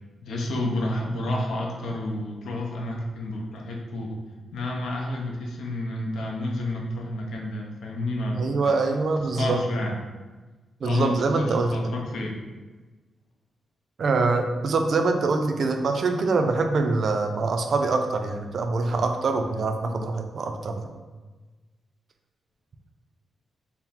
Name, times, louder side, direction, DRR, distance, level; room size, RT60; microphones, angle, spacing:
voice 1, 0.2-4.2 4.5-8.7 9.2-10.0 10.8-12.4, left 1 dB, 90° left, 0 dB, 0.6 m, -30 dB
voice 2, 8.3-9.6 10.8-11.9 14.0-20.9, right 3 dB, 45° right, 5 dB, 0.3 m, -24 dB
4.4 x 2.0 x 3.5 m, 1.3 s
wide cardioid pair, 175°, 0 cm